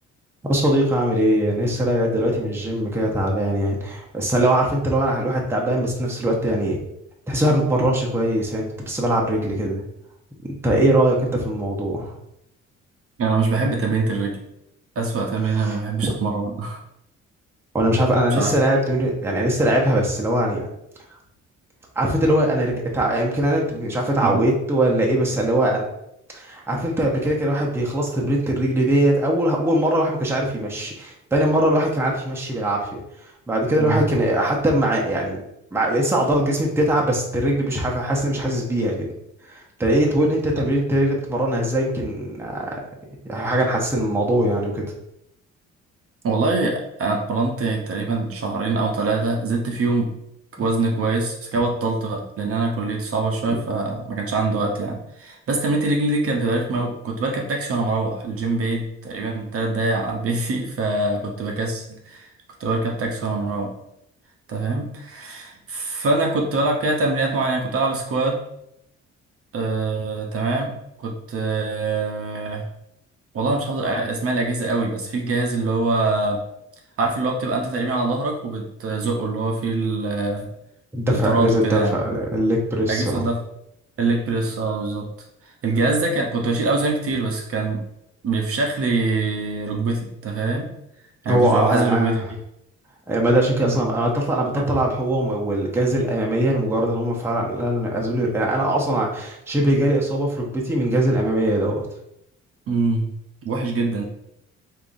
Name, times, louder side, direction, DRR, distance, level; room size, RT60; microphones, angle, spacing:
voice 1, 0.5-6.8 7.3-9.8 10.4-12.1 15.4-16.1 17.7-20.7 22.0-25.8 26.3-33.0 33.5-35.4 35.7-39.1 39.5-42.8 43.2-44.8 80.9-83.2 91.3-92.3 93.1-101.9, right 1 dB, 10° right, -2 dB, 0.7 m, -21 dB
voice 2, 13.2-14.4 15.0-16.8 18.3-18.5 24.2-24.4 33.8-34.0 46.2-50.1 50.6-62.3 62.6-63.7 64.5-68.4 69.5-72.7 73.3-76.4 77.0-80.5 81.1-82.0 82.9-83.4 84.0-85.1 85.6-87.8 88.2-90.7 91.2-92.2 93.6-93.8 94.6-94.7 102.7-103.1 103.4-104.1, right 3 dB, 50° right, 1 dB, 0.6 m, -24 dB
3.5 x 2.6 x 2.5 m, 0.79 s
cardioid pair, 90°, 30 cm